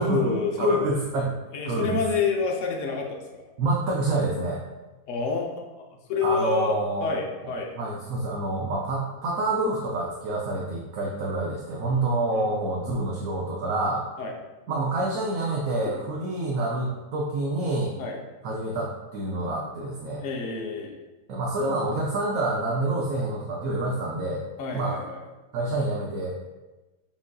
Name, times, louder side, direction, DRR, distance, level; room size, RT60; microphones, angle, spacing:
voice 1, 0.0-0.9 1.5-3.4 5.1-7.7 12.3-12.5 14.2-14.3 18.0-18.2 20.2-21.0 24.6-25.2, left 4 dB, 65° left, 1 dB, 0.9 m, -28 dB
voice 2, 0.6-1.4 1.6-2.0 3.6-4.6 6.2-7.1 7.8-14.1 14.7-17.9 18.4-20.2 21.3-24.4 24.7-25.0 25.5-26.5, right 2 dB, 75° right, -2 dB, 1.0 m, -27 dB
7.1 x 2.5 x 2.2 m, 1.1 s
omnidirectional pair, 1.6 m